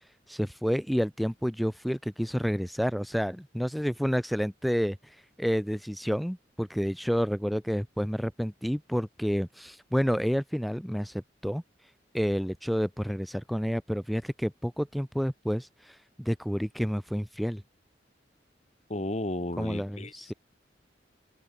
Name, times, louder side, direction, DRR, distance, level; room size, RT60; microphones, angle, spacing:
voice 1, 0.3-11.6 12.1-17.6 19.6-20.3, equal, ahead, 1.0 m, -29 dB
voice 2, 18.9-20.1, left 1 dB, 40° left, 1.7 m, -33 dB
head